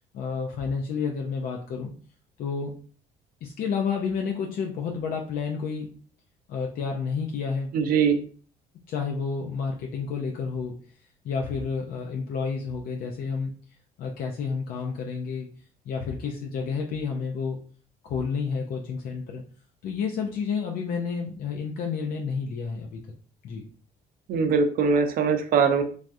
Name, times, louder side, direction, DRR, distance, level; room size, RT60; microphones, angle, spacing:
voice 1, 0.1-1.9 2.4-2.7 3.4-5.9 6.5-7.7 8.9-10.8 11.2-13.5 14.0-15.5 15.9-17.6 18.0-19.4 19.8-23.0 23.4-23.6, left 5 dB, 60° left, 1 dB, 0.5 m, -30 dB
voice 2, 7.7-8.2 24.3-25.8, right 5 dB, 60° right, 6 dB, 0.6 m, -22 dB
3.3 x 2.3 x 2.6 m, 0.42 s
cardioid pair, 110°, 17 cm